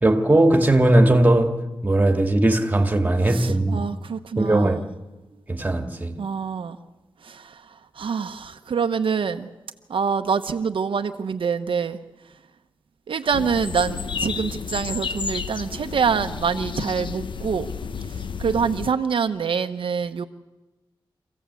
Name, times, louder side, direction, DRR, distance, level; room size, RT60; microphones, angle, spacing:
voice 1, 0.0-3.9 4.4-4.8 5.5-6.2, right 1 dB, 20° right, 2.1 m, -19 dB
voice 2, 3.3-4.8 6.2-6.8 7.2-9.5 9.9-12.0 13.1-17.7 18.1-20.2, right 6 dB, 80° right, 0.9 m, -26 dB
sound 1, 13.3-18.9, left 6 dB, 70° left, 0.9 m, -31 dB
25.5 x 15.5 x 8.2 m
wide cardioid pair, 120°, 9 cm